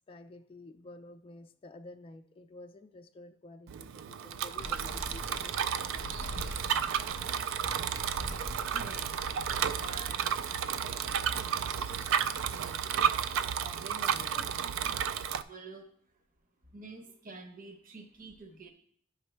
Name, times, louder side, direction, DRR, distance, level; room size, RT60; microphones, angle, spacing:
voice 1, 0.1-6.1, left 2 dB, 25° left, 6 dB, 0.3 m, -51 dB
Bicycle, 3.7-15.4, right 8 dB, 70° right, 0.3 m, -32 dB
sound 1, 4.6-12.7, equal, 90° right, 1.0 m, -44 dB
voice 2, 7.7-11.2 12.5-14.6 15.4-15.9 16.7-18.7, right 2 dB, 45° right, 5 dB, 0.9 m, -50 dB
10.0 x 5.1 x 3.3 m, 0.64 s
head